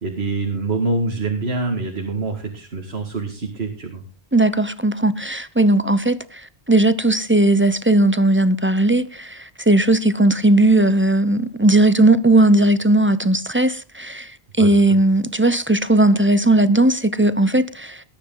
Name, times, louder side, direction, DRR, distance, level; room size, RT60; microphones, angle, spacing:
voice 1, 0.0-4.0 14.6-14.7, right 3 dB, 85° right, 2.2 m, -25 dB
voice 2, 4.3-6.4 6.7-14.3 14.6-18.0, right 2 dB, 15° right, 0.7 m, -17 dB
19.5 x 10.0 x 3.9 m
omnidirectional pair, 1.0 m